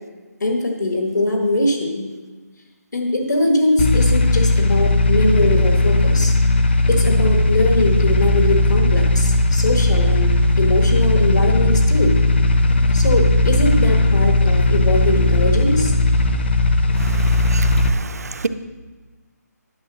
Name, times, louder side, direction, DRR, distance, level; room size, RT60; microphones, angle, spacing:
voice 1, 0.4-2.1 2.9-6.3 6.9-12.1 12.9-15.9, left 2 dB, 85° left, 2 dB, 1.6 m, -21 dB
sound 1, 3.8-17.9, left 2 dB, 35° left, 0.5 m, -17 dB
voice 2, 17.0-18.5, right 4 dB, 60° right, 11 dB, 0.5 m, -30 dB
10.5 x 4.9 x 6.2 m, 1.3 s
hypercardioid pair, 175°, 9 cm